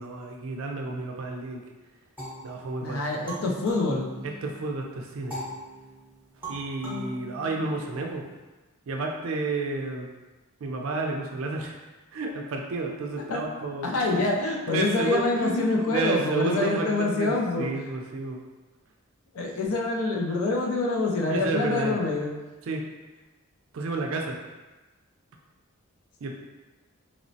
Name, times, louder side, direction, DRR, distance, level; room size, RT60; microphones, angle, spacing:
voice 1, 0.0-1.6 2.4-3.0 4.2-5.4 6.5-8.3 8.9-10.1 10.6-11.8 12.1-14.2 14.7-18.4 21.3-22.0 22.7-22.8 23.7-24.4 26.2-26.3, right 3 dB, 60° right, 1 dB, 0.4 m, -31 dB
sound 1, 2.2-4.7 5.3-8.1, equal, 10° right, 0.8 m, -40 dB
voice 2, 2.8-4.1 13.3-13.4 13.8-17.7 19.3-22.3, left 2 dB, 75° left, 0 dB, 0.4 m, -26 dB
3.0 x 2.0 x 2.6 m, 1.2 s
head